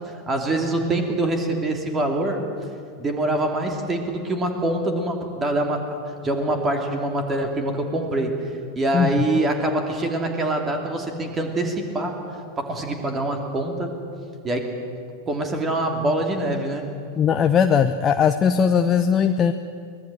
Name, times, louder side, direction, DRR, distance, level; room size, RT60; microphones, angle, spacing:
voice 1, 0.1-2.4 3.0-6.0 6.2-8.3 8.7-13.9 14.4-14.7 15.3-16.9, right 1 dB, 20° right, 4 dB, 2.9 m, -24 dB
voice 2, 8.9-9.2 17.2-19.5, left 7 dB, 25° left, 7 dB, 0.8 m, -19 dB
23.5 x 19.0 x 7.7 m, 2.3 s
figure-of-eight pair, 90°, 0 cm